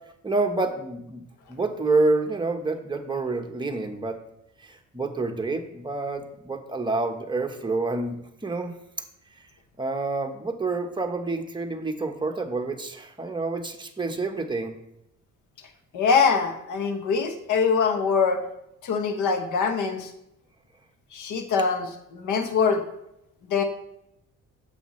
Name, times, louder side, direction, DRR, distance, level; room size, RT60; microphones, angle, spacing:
voice 1, 0.2-1.2 1.5-4.2 4.6-8.7 9.8-14.7, right 3 dB, 15° right, 4 dB, 1.1 m, -28 dB
voice 2, 15.9-18.4 18.8-20.1 21.1-22.8 23.5-23.6, left 5 dB, 80° left, 6 dB, 1.2 m, -23 dB
8.6 x 7.1 x 3.2 m, 0.81 s
cardioid pair, 90°, 30 cm